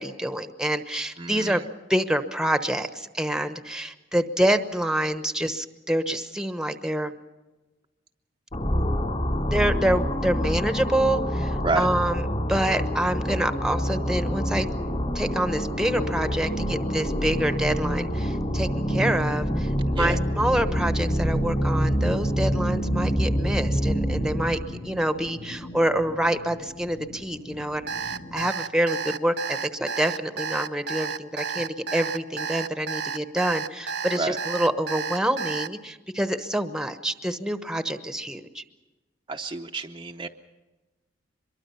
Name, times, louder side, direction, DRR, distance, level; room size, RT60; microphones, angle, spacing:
voice 1, 0.0-7.1 9.5-14.7 15.1-38.6, right 1 dB, 5° right, 9 dB, 1.0 m, -27 dB
voice 2, 1.2-1.6 11.6-11.9 19.9-20.2 34.2-34.4 39.3-40.3, right 3 dB, 25° right, 2 dB, 0.7 m, -29 dB
sound 1, 8.5-24.7, equal, 40° left, 3.1 m, -26 dB
sound 2, 20.7-28.5, left 1 dB, 60° left, 2.4 m, -42 dB
Alarm, 27.9-35.7, right 6 dB, 60° right, 0.8 m, -31 dB
24.0 x 22.5 x 5.7 m, 1.2 s
head